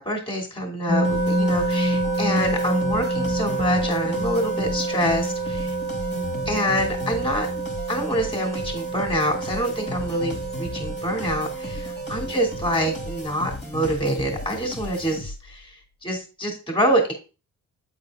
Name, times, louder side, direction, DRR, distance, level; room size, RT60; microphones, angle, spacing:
voice 1, 0.0-5.7 6.4-7.5 7.9-15.7 16.0-17.1, equal, 15° left, 1 dB, 2.9 m, -26 dB
sound 1, 0.9-13.2, right 2 dB, 10° right, 1.3 m, -27 dB
sound 2, 1.0-15.6, left 2 dB, 35° left, 2.6 m, -36 dB
8.7 x 4.2 x 3.7 m, 0.33 s
cardioid pair, 90°, 30 cm